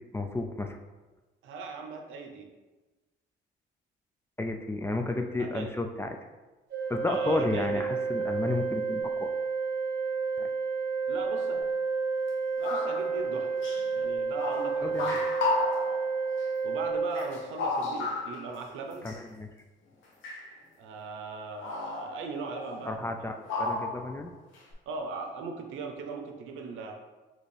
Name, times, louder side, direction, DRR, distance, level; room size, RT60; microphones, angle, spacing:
voice 1, 0.1-0.8 4.4-6.1 6.9-9.3 10.4-10.5 14.8-15.2 19.0-19.5 22.9-24.3, left 2 dB, 15° left, 4 dB, 0.3 m, -32 dB
voice 2, 1.4-2.5 5.4-5.7 7.1-7.9 11.1-11.6 12.6-13.5 13.9-15.3 16.6-19.1 20.8-23.6 24.9-26.9, right 4 dB, 90° right, 3 dB, 0.6 m, -39 dB
Organ, 6.7-17.7, right 4 dB, 55° right, 0.9 m, -31 dB
sound 1, 12.3-12.4 12.6-13.3 13.6-13.9 14.4-16.1 16.4-16.5 17.1-18.6 18.9-19.2 20.2-20.5 21.6-23.1 23.5-24.2 24.5-24.7, left 3 dB, 80° left, 0.9 m, -33 dB
4.2 x 3.0 x 3.3 m, 1.2 s
cardioid pair, 90°, 20 cm